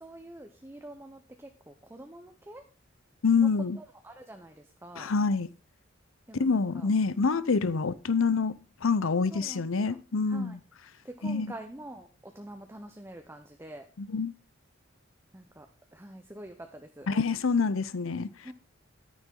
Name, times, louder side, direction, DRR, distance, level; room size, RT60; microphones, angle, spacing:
voice 1, 0.0-2.6 3.4-3.5 3.8-5.1 6.3-6.9 7.3-7.4 9.3-10.0 10.3-10.6 11.0-13.9 15.3-17.1 18.4-18.5, right 1 dB, 10° right, 0.8 m, -46 dB
voice 2, 3.2-3.8 5.0-5.5 6.4-8.5 8.8-10.6 11.2-11.5 14.0-14.3 17.1-18.3, left 4 dB, 85° left, 0.7 m, -26 dB
11.0 x 9.5 x 3.8 m
head